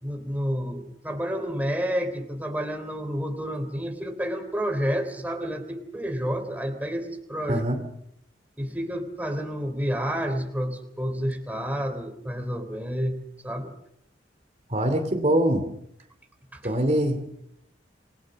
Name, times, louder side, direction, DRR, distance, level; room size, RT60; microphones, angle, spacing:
voice 1, 0.0-7.6 8.6-13.2 13.4-13.7 16.5-16.7, equal, 10° right, 5 dB, 3.4 m, -30 dB
voice 2, 7.5-7.8 14.7-15.7 16.6-17.3, right 1 dB, 35° right, 6 dB, 2.8 m, -23 dB
28.5 x 21.5 x 6.5 m, 0.76 s
head